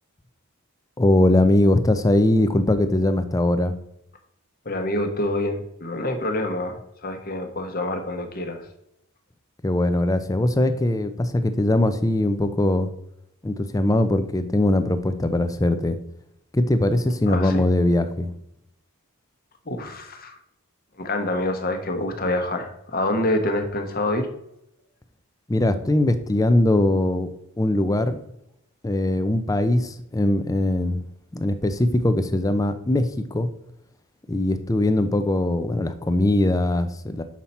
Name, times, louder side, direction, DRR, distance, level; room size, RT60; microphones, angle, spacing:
voice 1, 1.0-3.7 9.6-12.9 13.4-16.0 16.5-18.3 25.5-27.3 27.6-28.2 28.8-31.0 31.3-33.5 34.3-37.2, left 1 dB, 15° left, 10 dB, 0.5 m, -21 dB
voice 2, 4.6-8.6 17.3-17.6 19.7-20.4 21.0-24.3, left 1 dB, 40° left, 6 dB, 1.1 m, -26 dB
7.3 x 5.6 x 4.2 m, 0.78 s
head